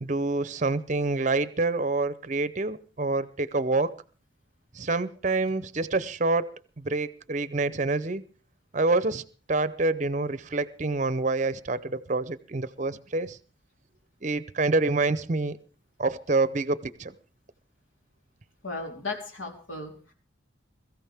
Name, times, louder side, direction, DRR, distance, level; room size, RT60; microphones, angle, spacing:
voice 1, 0.0-3.9 4.8-6.5 6.8-8.2 8.7-9.2 9.5-13.4 14.2-15.6 16.0-17.1, right 3 dB, 40° right, 16 dB, 0.6 m, -27 dB
voice 2, 18.6-20.1, left 3 dB, 80° left, 2 dB, 3.7 m, -36 dB
22.0 x 14.0 x 3.5 m, 0.37 s
head